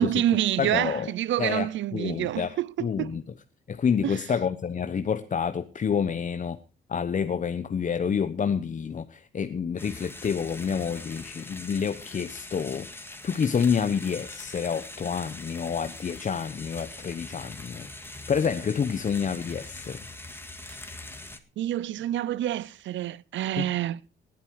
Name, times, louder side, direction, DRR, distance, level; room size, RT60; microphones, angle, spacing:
voice 1, 0.0-3.2 4.0-4.2 21.6-24.0, right 12 dB, 70° right, 0.7 m, -27 dB
voice 2, 0.6-1.1 1.4-3.2 3.7-6.6 6.9-12.9 13.2-17.9 18.3-20.0 23.6-23.7, left 6 dB, 40° left, 1.0 m, -28 dB
sound 1, 9.8-21.4, left 2 dB, 10° left, 2.0 m, -42 dB
19.0 x 9.5 x 4.7 m
cardioid pair, 90°, 20 cm